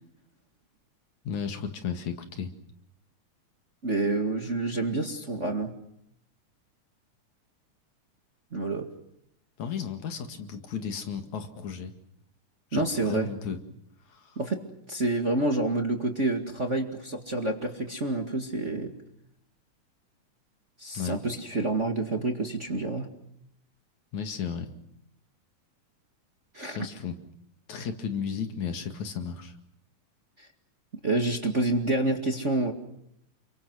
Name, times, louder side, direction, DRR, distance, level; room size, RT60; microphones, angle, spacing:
voice 1, 1.2-2.5 9.6-11.9 12.7-13.6 14.1-14.3 20.9-21.2 24.1-24.7 26.7-27.2 27.7-29.5, left 7 dB, 65° left, 6 dB, 3.3 m, -34 dB
voice 2, 3.8-5.7 8.5-8.9 12.7-13.3 14.4-14.6 14.9-18.9 20.8-23.1 26.5-26.9 30.4-30.5 31.0-32.7, right 2 dB, 25° right, 3 dB, 1.9 m, -28 dB
29.5 x 24.0 x 6.2 m, 0.76 s
omnidirectional pair, 3.6 m